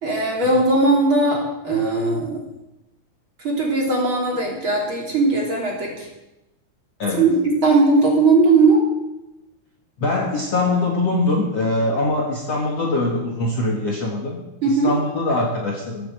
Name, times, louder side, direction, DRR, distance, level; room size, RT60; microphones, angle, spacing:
voice 1, 0.0-2.4 3.4-6.1 7.2-8.8 14.6-14.9, right 3 dB, 30° right, -2 dB, 2.9 m, -18 dB
voice 2, 10.0-14.4 14.6-16.1, left 2 dB, 80° left, -1 dB, 1.4 m, -22 dB
16.0 x 9.6 x 7.9 m, 0.97 s
omnidirectional pair, 5.9 m